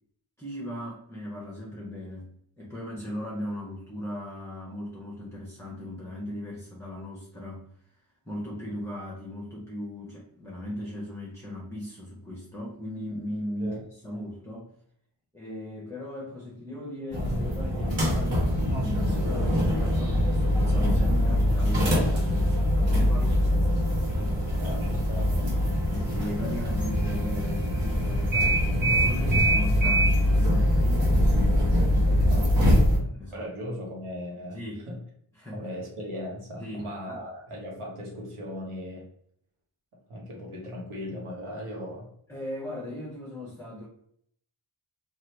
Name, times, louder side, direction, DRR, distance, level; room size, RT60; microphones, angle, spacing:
voice 1, 0.4-7.7 8.3-14.7 15.3-23.5 25.9-31.1 32.2-33.5 34.5-34.9 35.3-35.7 36.6-37.3 42.3-43.9, left 1 dB, 5° left, -3 dB, 0.7 m, -38 dB
sound 1, 17.1-33.0, equal, 65° right, 1.1 m, -23 dB
voice 2, 24.6-25.7 32.2-32.5 33.3-35.0 35.5-39.1 40.1-42.1, equal, 85° right, -2 dB, 1.2 m, -38 dB
2.9 x 2.5 x 3.2 m, 0.68 s
cardioid pair, 65°, 50 cm